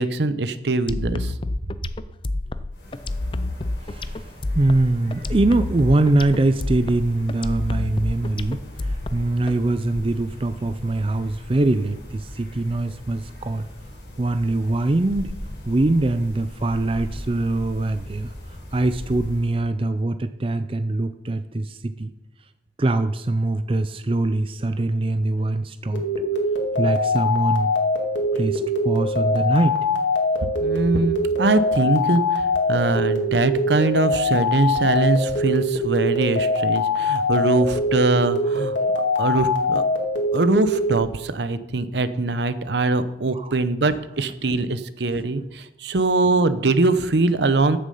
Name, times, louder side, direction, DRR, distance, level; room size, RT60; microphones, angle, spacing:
voice 1, 0.0-1.3 30.6-32.4 32.7-38.7 39.2-39.8 40.3-47.8, right 3 dB, 70° right, 13 dB, 0.7 m, -22 dB
sound 1, 0.9-9.5, left 2 dB, 30° left, 0.4 m, -28 dB
sound 2, 2.7-19.7, equal, 70° left, 3.9 m, -39 dB
voice 2, 3.8-4.2 4.5-13.7 14.2-15.4 15.7-18.3 18.7-22.1 22.8-26.1 26.8-27.7 28.3-29.8 43.3-43.5, right 2 dB, 30° right, 10 dB, 0.5 m, -23 dB
sound 3, 25.9-41.0, left 2 dB, 90° left, 2.1 m, -23 dB
14.0 x 6.8 x 5.5 m, 0.88 s
head